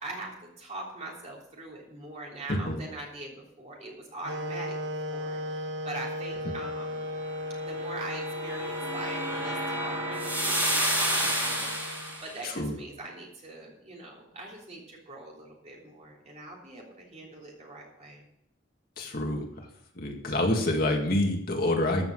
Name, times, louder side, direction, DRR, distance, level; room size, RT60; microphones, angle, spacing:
voice 1, 0.0-7.1 7.6-18.2, right 2 dB, 35° right, -2 dB, 3.4 m, -42 dB
voice 2, 2.5-2.8 6.5-6.6 12.4-12.7 19.0-19.5 20.0-22.1, left 1 dB, 50° left, 2 dB, 2.0 m, -27 dB
sound 1, 4.2-12.3, left 1 dB, 70° right, 0.9 m, -36 dB
sound 2, 7.7-12.3, right 1 dB, 10° right, 3.0 m, -30 dB
14.0 x 5.9 x 7.7 m, 0.74 s
head